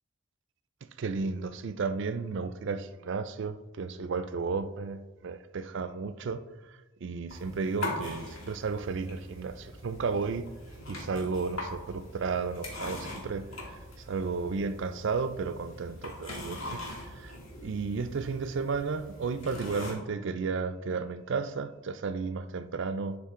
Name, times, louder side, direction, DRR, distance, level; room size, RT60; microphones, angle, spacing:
voice 1, 1.0-10.5 10.9-23.2, right 4 dB, 60° right, 0.4 m, -33 dB
sound 1, 7.3-19.9, left 1 dB, 65° left, 1.9 m, -42 dB
11.0 x 3.7 x 3.7 m
head